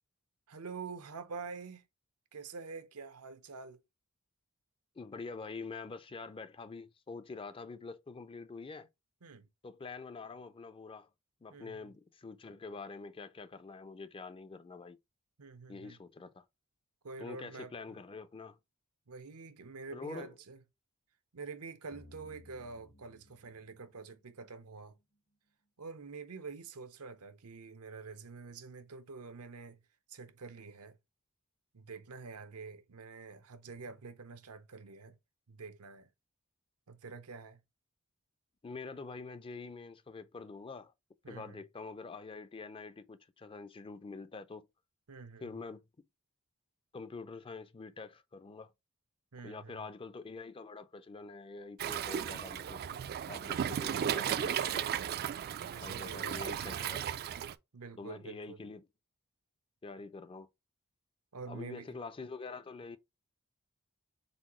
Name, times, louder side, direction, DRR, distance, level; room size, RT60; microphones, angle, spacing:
voice 1, 0.5-1.9 2.3-3.8 9.2-9.5 11.5-11.9 15.4-16.0 17.0-17.7 19.1-20.6 21.3-24.9 25.8-29.8 30.1-31.0 31.7-35.2 35.5-36.1 36.9-37.6 41.2-41.6 45.1-45.5 49.3-49.8 55.8-56.4 57.7-58.6 61.3-62.0, right 4 dB, 85° right, 0.8 m, -47 dB
voice 2, 5.0-8.9 9.6-11.1 11.4-15.0 15.7-16.5 17.2-18.6 19.9-20.3 38.6-40.9 41.3-44.7 45.4-45.8 46.9-48.7 49.4-52.8 53.3-55.0 55.8-57.1 58.0-58.9 59.8-60.5 61.5-63.0, left 4 dB, 25° left, 0.4 m, -46 dB
sound 1, 21.9-24.8, left 2 dB, 55° left, 1.0 m, -59 dB
Waves surf, 51.8-57.5, right 9 dB, 45° right, 0.3 m, -35 dB
4.1 x 3.8 x 3.0 m
head